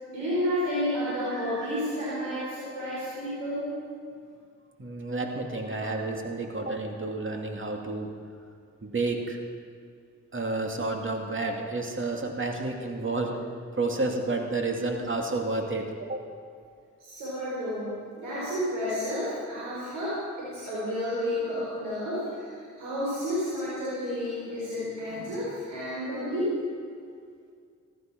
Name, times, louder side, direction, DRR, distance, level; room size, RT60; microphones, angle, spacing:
voice 1, 0.1-3.7 5.7-5.8 17.0-17.9 18.2-26.5, equal, 85° right, -8 dB, 4.6 m, -31 dB
voice 2, 4.8-8.1 8.8-9.4 10.3-13.4 13.8-16.3, right 2 dB, 40° right, 2 dB, 2.6 m, -30 dB
14.5 x 12.0 x 6.3 m, 2.2 s
supercardioid pair, 40°, 32 cm